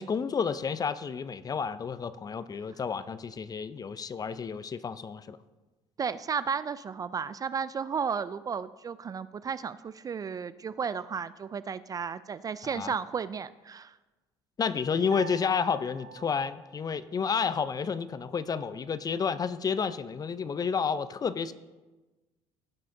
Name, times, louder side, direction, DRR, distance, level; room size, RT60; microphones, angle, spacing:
voice 1, 0.0-5.4 12.6-12.9 14.6-21.5, left 6 dB, 30° left, 15 dB, 0.6 m, -30 dB
voice 2, 6.0-13.9, right 6 dB, 30° right, 16 dB, 0.3 m, -33 dB
Piano, 15.1-17.6, right 4 dB, 60° right, 1.6 m, -47 dB
16.5 x 5.6 x 3.9 m, 1.2 s
supercardioid pair, 80°, 12 cm